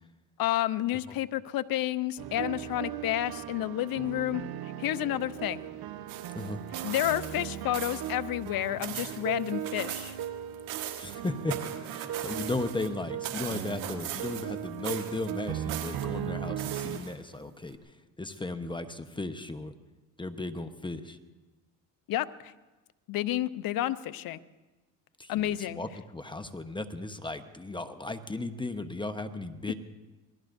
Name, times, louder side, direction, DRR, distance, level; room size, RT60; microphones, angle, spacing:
voice 1, 0.4-4.4 4.8-5.6 6.8-10.2 22.1-22.5 23.1-24.4 25.3-25.8, left 13 dB, 55° left, 14 dB, 0.8 m, -30 dB
sound 1, 2.2-17.0, right 10 dB, 60° right, 1.0 m, -38 dB
sound 2, 6.1-7.5 7.7-8.2 8.5-10.3 10.5-12.9 13.2-14.6 14.8-16.0 16.6-17.3 17.7-17.8, right 11 dB, 85° right, 1.7 m, -39 dB
voice 2, 11.0-11.6 11.9-19.7 20.2-21.2 25.2-29.7, left 2 dB, 10° left, 8 dB, 1.0 m, -36 dB
27.0 x 20.0 x 2.7 m, 1.1 s
supercardioid pair, 85°, 42 cm